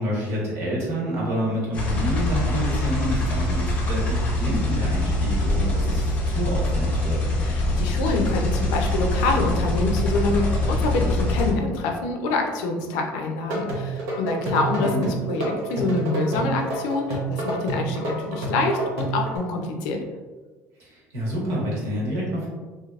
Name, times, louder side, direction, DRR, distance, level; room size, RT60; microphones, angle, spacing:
voice 1, 0.0-7.2 14.8-15.1 20.8-22.5, equal, 50° right, -5 dB, 1.2 m, -28 dB
sound 1, 1.7-11.5, left 1 dB, 25° left, 0.6 m, -24 dB
voice 2, 7.4-20.0, left 3 dB, 85° left, 3 dB, 0.5 m, -26 dB
sound 2, 13.4-19.4, right 2 dB, 75° right, 0.9 m, -28 dB
3.2 x 2.7 x 2.4 m, 1.3 s
cardioid pair, 175°, 6 cm